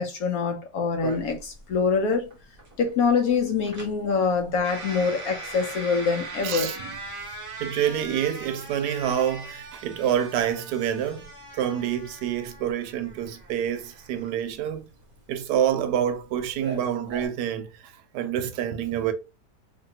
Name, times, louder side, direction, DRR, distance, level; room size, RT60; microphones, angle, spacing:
voice 1, 0.0-2.4 2.8-6.8, left 5 dB, 70° left, 1.0 m, -25 dB
sound 1, 1.0-17.3, right 2 dB, 45° right, 0.8 m, -40 dB
voice 2, 6.4-6.9 7.6-11.3 11.5-14.9 15.3-19.1, right 10 dB, 75° right, 1.1 m, -27 dB
2.8 x 2.6 x 2.8 m
omnidirectional pair, 1.8 m